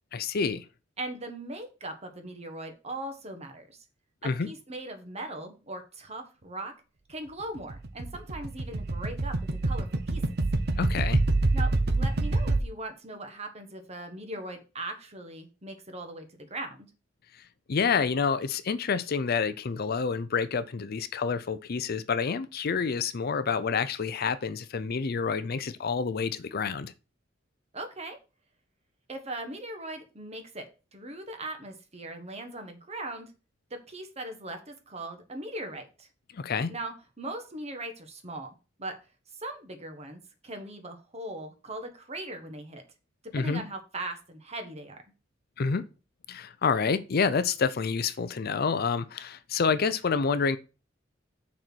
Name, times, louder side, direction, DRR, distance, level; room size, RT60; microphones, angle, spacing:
voice 1, 0.1-0.6 4.2-4.5 10.8-11.2 17.7-26.9 36.3-36.7 43.3-43.6 45.6-45.8 46.3-50.6, left 5 dB, 55° left, 0.5 m, -28 dB
voice 2, 1.0-3.8 4.4-6.7 7.1-9.3 9.6-10.2 11.5-16.9 27.7-28.2 29.1-30.7 30.9-33.3 33.7-36.1 36.7-38.5 38.8-39.0 39.3-42.8 43.3-45.0, right 2 dB, 35° right, 1.5 m, -39 dB
sound 1, 7.6-12.6, right 2 dB, 60° right, 0.8 m, -27 dB
6.5 x 4.3 x 6.1 m
head